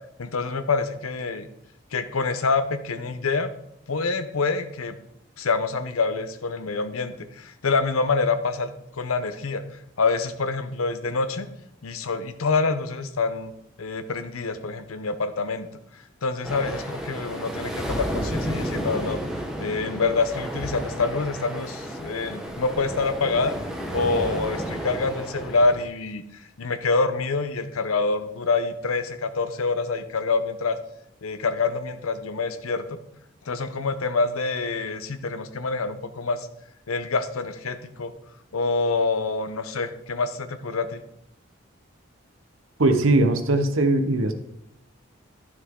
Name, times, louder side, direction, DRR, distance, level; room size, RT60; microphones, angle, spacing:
voice 1, 0.2-1.5 1.9-3.5 3.9-5.0 5.4-8.7 9.0-9.6 10.0-11.5 11.8-13.5 13.8-15.7 16.2-19.2 19.6-23.6 23.9-26.2 26.6-30.8 31.2-33.0 33.5-36.5 36.9-38.1 38.5-41.0, left 4 dB, 85° left, 11 dB, 0.8 m, -26 dB
sound 1, 16.4-25.8, equal, 5° right, 1.0 m, -32 dB
voice 2, 42.8-44.3, right 2 dB, 75° right, 8 dB, 0.9 m, -20 dB
11.5 x 6.3 x 3.7 m, 0.77 s
head